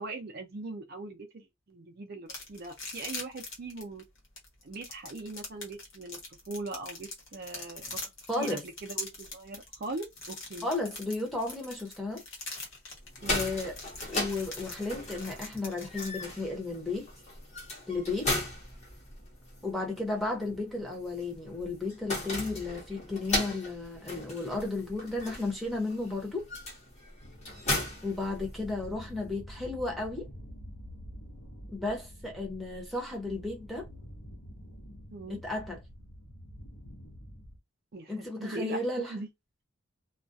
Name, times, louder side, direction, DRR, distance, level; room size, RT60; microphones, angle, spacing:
voice 1, 0.0-4.0 4.6-8.0 8.4-10.7 13.2-13.3 35.1-35.4 37.9-39.3, right 2 dB, 45° right, 0.5 m, -40 dB
sound 1, 2.3-16.1, left 2 dB, 60° left, 1.0 m, -42 dB
voice 2, 8.3-8.6 10.6-12.2 13.3-13.8 14.1-17.1 17.9-18.3 19.6-26.5 28.0-30.3 31.7-33.9 35.3-35.8 38.1-39.2, left 2 dB, ahead, 0.7 m, -34 dB
sound 2, 13.0-28.9, left 1 dB, 30° left, 0.9 m, -37 dB
sound 3, 27.2-37.6, equal, 80° left, 0.7 m, -47 dB
2.3 x 2.1 x 2.5 m
head